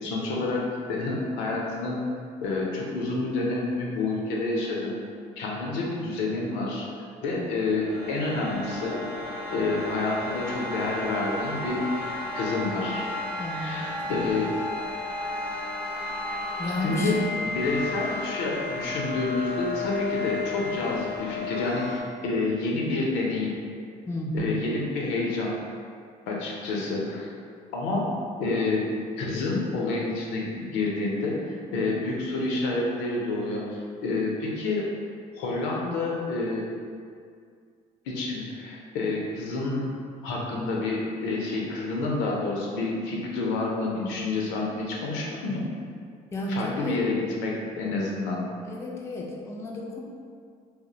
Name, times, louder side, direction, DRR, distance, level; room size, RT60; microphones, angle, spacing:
voice 1, 0.0-2.0 2.4-5.0 5.4-6.9 7.2-8.9 9.5-12.1 12.3-13.1 13.5-14.5 16.8-23.6 24.3-25.5 26.3-27.3 27.7-28.9 29.2-34.9 35.4-36.6 38.1-39.9 40.2-45.6 46.5-48.4, left 3 dB, 80° left, -2 dB, 0.5 m, -28 dB
sound 1, 7.5-22.0, left 3 dB, 60° right, 0.8 m, -33 dB
voice 2, 13.4-14.4 16.6-17.6 24.1-24.6 46.3-47.1 48.6-50.0, left 1 dB, 15° left, -1 dB, 0.3 m, -32 dB
2.2 x 2.0 x 2.7 m, 2.2 s
supercardioid pair, 75°, 18 cm